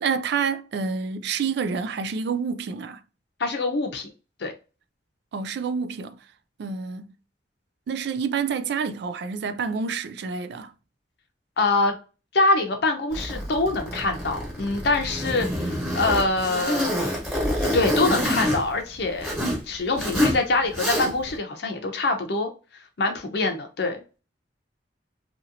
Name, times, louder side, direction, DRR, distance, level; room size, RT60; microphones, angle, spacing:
voice 1, 0.0-3.0 5.3-6.2 6.6-7.1 7.9-10.7, right 6 dB, 65° right, 0.3 m, -28 dB
voice 2, 3.4-4.1 4.4-4.5 11.6-11.9 12.3-17.2 17.6-19.3 19.7-22.5 23.0-24.0, left 2 dB, 65° left, 0.6 m, -24 dB
Zipper (clothing), 13.1-19.6 19.9-20.4 20.7-21.3, equal, 10° right, 1.3 m, -27 dB
2.9 x 2.7 x 2.5 m
head